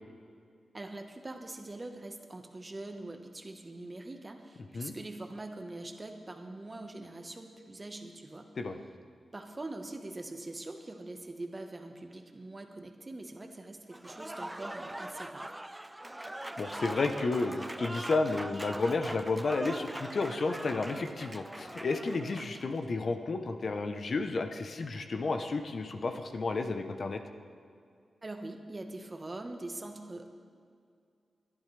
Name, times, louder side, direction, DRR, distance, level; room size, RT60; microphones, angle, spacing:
voice 1, 0.7-8.5 9.3-15.6 28.2-30.3, right 2 dB, 30° right, 5 dB, 1.3 m, -43 dB
Applause / Crowd, 13.9-22.8, right 1 dB, 15° right, 0.5 m, -41 dB
voice 2, 16.6-27.2, left 3 dB, 55° left, 7 dB, 0.9 m, -32 dB
21.5 x 11.0 x 3.4 m, 2.3 s
cardioid pair, 65°, 0 cm